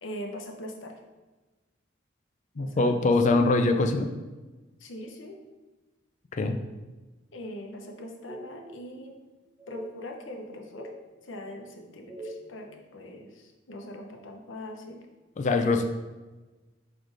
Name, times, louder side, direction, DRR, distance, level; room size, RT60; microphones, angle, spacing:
voice 1, 0.0-1.0 2.5-3.4 4.8-5.4 7.3-9.1 9.7-10.9 11.2-15.0 15.5-15.7, left 1 dB, 80° left, 2 dB, 0.9 m, -41 dB
voice 2, 2.6-4.1 6.4-6.6 15.4-15.8, left 3 dB, 40° left, 5 dB, 0.4 m, -23 dB
sound 1, 7.7-7.9 8.3-9.1 9.6-9.9 10.4-11.0 11.8-12.5, right 1 dB, 15° right, 0.7 m, -44 dB
4.6 x 4.2 x 5.1 m, 1.2 s
head